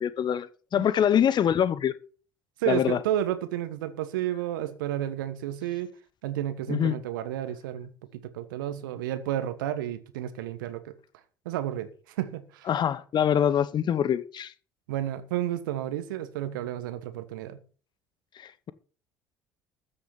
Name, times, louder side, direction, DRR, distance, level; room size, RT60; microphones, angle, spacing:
voice 1, 0.0-1.9 2.7-3.0 6.7-7.0 12.7-14.5 18.4-18.7, left 9 dB, 40° left, 1.0 m, -24 dB
voice 2, 2.6-5.9 6.2-7.9 8.3-10.9 11.4-11.9 12.2-12.7 14.9-17.6, right 12 dB, 70° right, 1.3 m, -31 dB
13.5 x 6.6 x 7.0 m
figure-of-eight pair, 60°, 11 cm